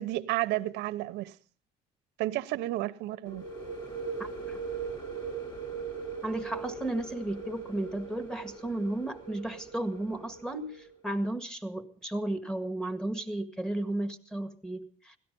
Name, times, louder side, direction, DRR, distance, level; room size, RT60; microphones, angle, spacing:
voice 1, 0.0-1.3 2.2-3.5, right 16 dB, 90° right, 0.9 m, -31 dB
sound 1, 3.3-10.9, right 5 dB, 25° left, 3.7 m, -40 dB
voice 2, 4.2-4.6 6.2-15.2, right 1 dB, 5° left, 1.8 m, -34 dB
17.5 x 13.0 x 5.3 m
cardioid pair, 110°, 17 cm